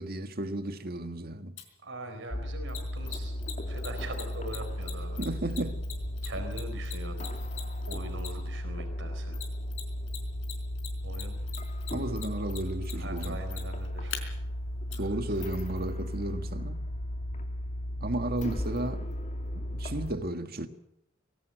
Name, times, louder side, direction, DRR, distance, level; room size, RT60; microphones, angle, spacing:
voice 1, 0.0-1.5 5.2-5.8 11.9-13.4 15.0-16.8 18.0-19.1 19.5-20.7, right 1 dB, 55° right, 1.8 m, -33 dB
Mechanisms, 1.6-1.7 2.7-8.6 9.3-10.2 10.4-14.2 14.9-15.0, left 11 dB, 80° left, 4.4 m, -40 dB
voice 2, 1.8-3.4 3.7-5.2 6.2-7.4 7.9-9.4 11.0-11.4 12.9-14.3 14.9-15.4, right 1 dB, 75° right, 4.3 m, -42 dB
sound 1, 2.3-20.1, left 1 dB, 40° left, 2.5 m, -35 dB
21.5 x 17.0 x 7.9 m
head